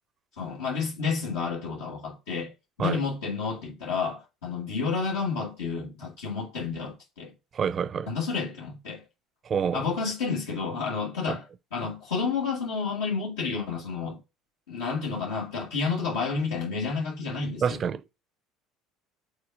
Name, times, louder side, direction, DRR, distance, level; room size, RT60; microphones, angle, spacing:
voice 1, 0.4-2.5 2.8-7.3 8.1-9.0 9.7-11.4 11.7-14.2 14.7-17.8, left 5 dB, 85° left, 1.4 m, -30 dB
voice 2, 7.5-8.1 9.4-9.8 11.3-11.4 17.6-18.0, right 7 dB, 40° right, 0.5 m, -27 dB
5.0 x 4.2 x 5.6 m
hypercardioid pair, 75°, 0 cm